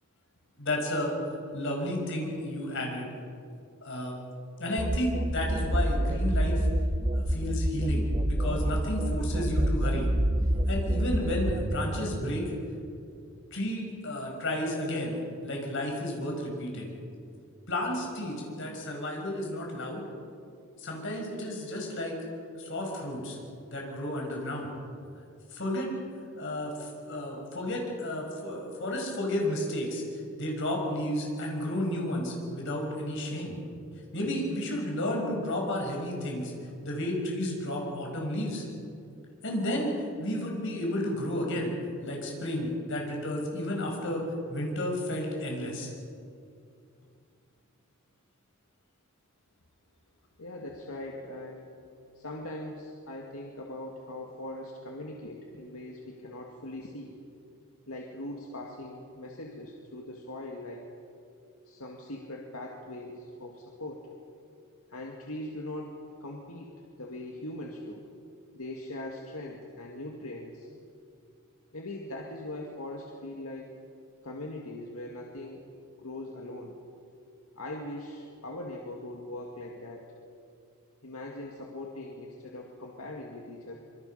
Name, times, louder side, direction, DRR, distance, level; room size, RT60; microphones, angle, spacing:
voice 1, 0.6-1.1 1.5-3.1 3.8-4.1 4.6-6.7 7.1-10.1 10.7-12.4 13.5-16.9 17.7-20.1 20.8-22.2 22.6-23.4 23.7-24.7 25.5-25.9 26.4-30.0 30.4-33.5 34.1-36.5 36.8-38.6 39.4-41.7 42.0-44.2 44.5-45.9, left 1 dB, 60° left, 0 dB, 5.8 m, -32 dB
sound 1, 4.8-12.4, right 1 dB, 25° right, 1.0 m, -27 dB
voice 2, 50.4-51.8 52.1-57.3 57.9-60.9 61.7-64.1 64.9-68.1 68.5-70.7 71.7-73.7 74.2-75.7 76.0-76.8 77.6-80.0 81.0-83.7, left 1 dB, 85° left, 0 dB, 2.3 m, -41 dB
26.0 x 24.0 x 5.8 m, 2.5 s
head